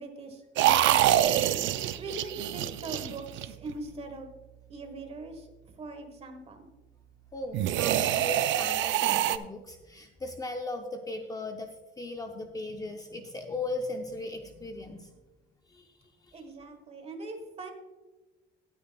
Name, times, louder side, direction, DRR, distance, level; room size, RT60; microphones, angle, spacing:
voice 1, 0.0-1.4 2.0-4.3 4.7-6.6 16.3-17.7, right 2 dB, 30° right, 6 dB, 1.3 m, -42 dB
sound 1, 0.6-3.7 7.5-9.4, right 12 dB, 70° right, 0.5 m, -25 dB
Bass guitar, 1.2-7.5, right 7 dB, 5° right, 1.1 m, -52 dB
voice 2, 7.3-15.2 15.7-16.4, left 2 dB, 15° left, 4 dB, 0.5 m, -38 dB
18.5 x 8.6 x 2.2 m, 1.2 s
cardioid pair, 175°, 21 cm